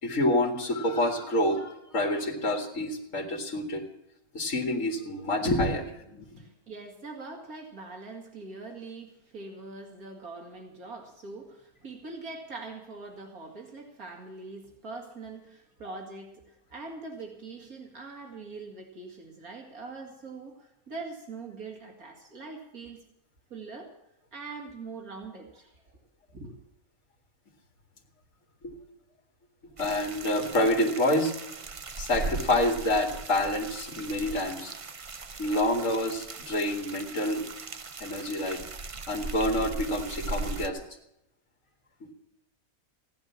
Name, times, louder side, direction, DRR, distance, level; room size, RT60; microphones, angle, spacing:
voice 1, 0.0-3.8 4.3-6.4 28.6-28.7 29.8-31.3 32.0-34.7 35.4-37.4 38.0-38.7 39.1-40.8 42.0-42.1, left 1 dB, 60° left, 2 dB, 2.6 m, -27 dB
voice 2, 6.4-23.0 23.5-23.9 24.3-25.8 26.3-26.6, right 3 dB, 80° right, 2 dB, 2.8 m, -43 dB
sound 1, 29.8-40.7, right 3 dB, 40° right, 0.4 m, -39 dB
16.0 x 10.5 x 7.1 m, 0.83 s
omnidirectional pair, 1.5 m